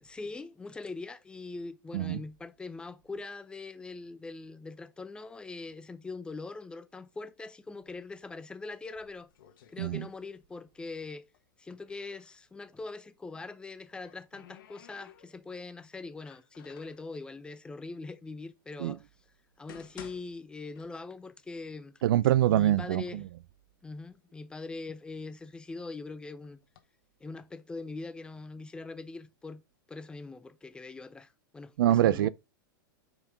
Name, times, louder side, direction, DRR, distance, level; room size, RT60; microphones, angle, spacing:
voice 1, 0.0-9.3 9.7-11.3 11.6-19.1 19.6-21.9 22.4-23.3 23.8-26.6 27.2-29.6 29.9-32.3, left 3 dB, 10° left, 0.5 m, -42 dB
sound 1, 8.8-10.7 11.0-12.4 13.6-15.6 16.2-17.1 17.9-18.0 18.6-18.7 19.4-21.3 21.7-21.8 22.5-22.6 22.9-23.6 24.1-25.8 26.4-26.8, left 10 dB, 70° left, 1.2 m, -55 dB
voice 2, 22.0-23.3 31.8-32.3, right 13 dB, 75° right, 0.4 m, -25 dB
5.2 x 4.9 x 3.7 m
supercardioid pair, 140°, 12 cm